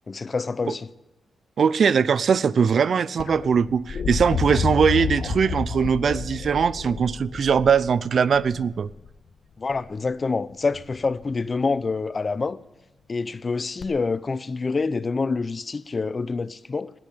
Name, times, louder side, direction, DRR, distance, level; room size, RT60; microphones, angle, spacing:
voice 1, 0.1-0.9 9.6-12.6 13.1-16.9, left 4 dB, 35° left, 0.6 m, -26 dB
voice 2, 1.6-8.9, right 6 dB, 60° right, 0.5 m, -21 dB
sound 1, 3.2-9.1 10.7-11.2 13.8-13.9, left 6 dB, 60° left, 1.3 m, -30 dB
19.0 x 8.7 x 6.7 m
cardioid pair, 95°, 0 cm